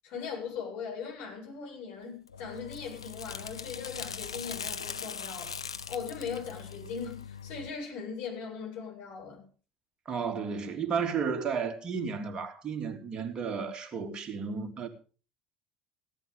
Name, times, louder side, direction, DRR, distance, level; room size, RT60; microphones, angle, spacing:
voice 1, 0.0-5.6 5.9-9.5, left 6 dB, 55° left, 7.8 m, -39 dB
sound 1, 2.3-7.8, left 6 dB, 80° left, 0.6 m, -40 dB
voice 2, 10.0-14.9, right 6 dB, 35° right, 3.2 m, -33 dB
16.5 x 12.0 x 5.2 m
figure-of-eight pair, 65°, 3 cm